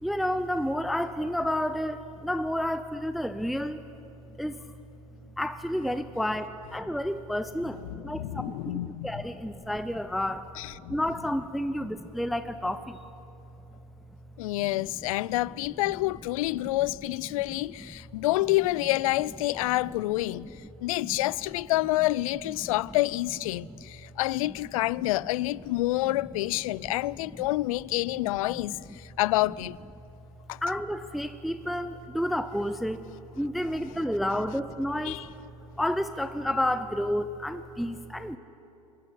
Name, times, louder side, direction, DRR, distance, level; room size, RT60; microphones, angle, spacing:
voice 1, 0.0-3.8 4.3-4.7 5.4-10.5 10.9-13.0 14.7-14.9 15.3-15.4 17.5-17.9 19.7-19.8 20.4-20.5 21.0-21.3 22.6-22.7 23.6-23.9 24.4-24.6 25.0-25.1 26.0-26.2 27.3-27.4 28.2-29.0 30.6-33.1 33.3-35.2 35.8-38.4, equal, ahead, 0.6 m, -31 dB
voice 2, 7.9-9.1 10.6-11.0 14.4-20.5 20.8-29.8 30.5-30.6 35.0-35.2, left 18 dB, 60° left, 0.4 m, -28 dB
22.5 x 13.5 x 9.8 m
hypercardioid pair, 95°, 20 cm